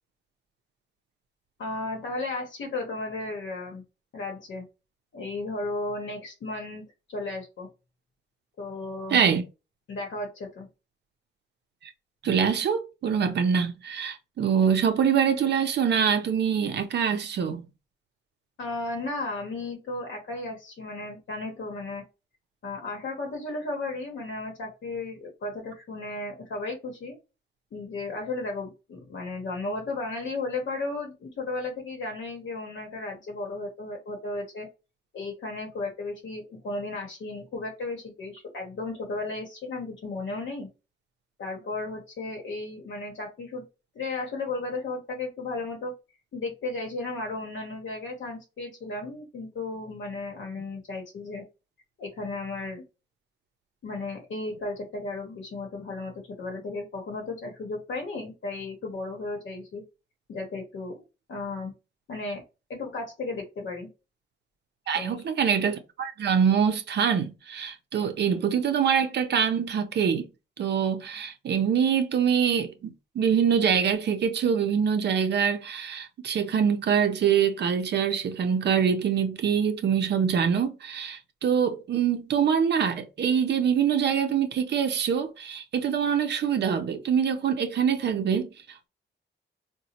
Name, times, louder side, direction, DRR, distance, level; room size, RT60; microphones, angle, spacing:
voice 1, 1.6-3.8 4.1-4.6 5.1-6.8 7.1-7.7 8.6-9.2 9.9-10.7 18.6-22.0 22.6-27.2 27.7-34.7 35.1-40.7 41.4-43.6 43.9-45.9 46.3-51.4 52.0-52.8 53.8-59.8 60.3-61.0 61.3-61.7 62.1-62.4 62.7-63.9 64.9-65.2, left 2 dB, 65° left, 0.9 m, -34 dB
voice 2, 9.1-9.4 12.2-17.7 64.9-70.3 70.6-88.9, right 7 dB, 60° right, 0.5 m, -24 dB
4.0 x 2.1 x 2.8 m
wide cardioid pair, 175°, 20 cm